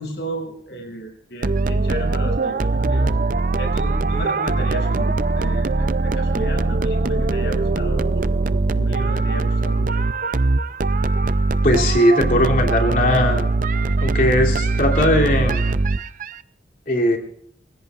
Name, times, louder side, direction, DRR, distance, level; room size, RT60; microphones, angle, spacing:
voice 1, 0.0-3.2 3.6-8.4 8.7-10.0, right 1 dB, 65° left, 2 dB, 7.0 m, -33 dB
sound 1, 1.4-16.3, right 3 dB, 45° right, 0.5 m, -21 dB
voice 2, 11.6-13.5 14.0-15.8 16.9-17.2, left 1 dB, 45° left, 2 dB, 3.2 m, -19 dB
29.0 x 16.5 x 2.5 m, 0.67 s
head